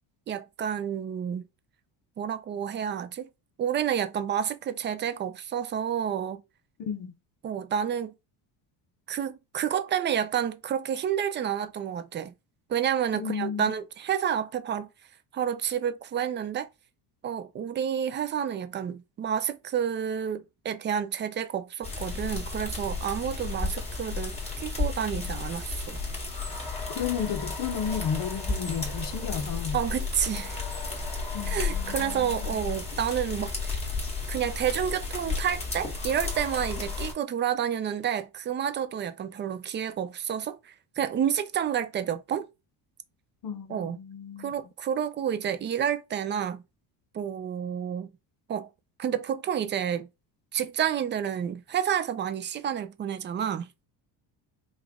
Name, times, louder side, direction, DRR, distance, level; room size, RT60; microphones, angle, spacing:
voice 1, 0.3-1.5 2.2-3.3 3.6-6.4 7.4-8.1 9.1-12.3 12.7-14.9 15.3-16.7 17.2-26.0 29.7-30.6 31.5-33.8 34.3-42.5 43.7-44.0 44.4-46.6 47.1-48.1 48.5-48.7 49.0-50.1 50.5-53.7, right 9 dB, 30° right, 0.3 m, -30 dB
voice 2, 6.8-7.1 13.1-13.7 26.6-29.8 31.3-32.6 43.4-44.5, left 7 dB, 50° left, 0.8 m, -33 dB
sound 1, 21.8-37.1, left 4 dB, 15° left, 1.6 m, -33 dB
5.1 x 2.4 x 3.5 m
cardioid pair, 140°, 44 cm